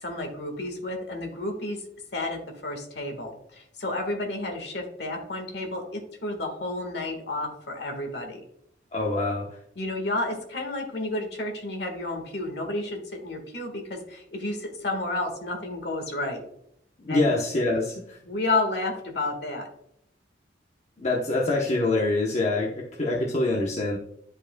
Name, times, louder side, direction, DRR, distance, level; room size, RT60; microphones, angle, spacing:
voice 1, 0.0-1.8 2.1-8.4 9.7-16.4 17.1-17.3 18.2-19.7, left 2 dB, 60° left, 3 dB, 1.6 m, -31 dB
voice 2, 8.9-9.5 17.0-18.2 21.0-24.0, left 2 dB, 40° left, -3 dB, 0.9 m, -25 dB
11.0 x 5.1 x 2.2 m, 0.74 s
head